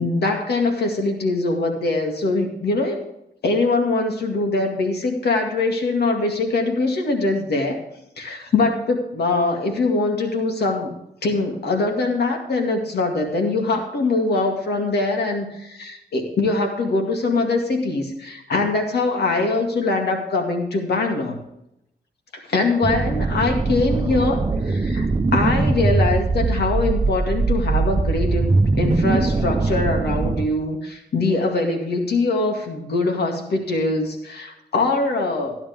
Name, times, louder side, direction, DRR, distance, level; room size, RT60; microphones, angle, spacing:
voice 1, 0.0-3.0 3.4-7.8 8.2-10.9 11.2-21.4 22.3-25.1 25.3-35.6, left 3 dB, 80° left, 3 dB, 2.2 m, -22 dB
sound 1, 22.8-30.4, right 3 dB, 25° right, 0.9 m, -21 dB
13.0 x 10.5 x 3.5 m, 0.82 s
cardioid pair, 65°, 17 cm